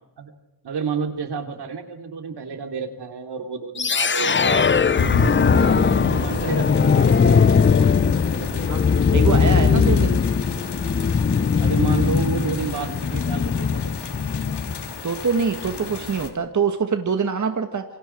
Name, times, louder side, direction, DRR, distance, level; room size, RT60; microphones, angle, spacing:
voice 1, 0.6-8.7 9.9-10.1 11.1-11.3 11.6-13.9, right 5 dB, 75° right, 5 dB, 3.2 m, -31 dB
sound 1, 3.8-14.9, left 6 dB, 30° left, 0.6 m, -20 dB
sound 2, 5.0-16.3, left 5 dB, 80° left, 3.0 m, -29 dB
voice 2, 9.1-10.2 15.0-17.8, right 5 dB, 45° right, 6 dB, 1.9 m, -24 dB
28.0 x 24.5 x 4.7 m, 1.0 s
cardioid pair, 80°, 40 cm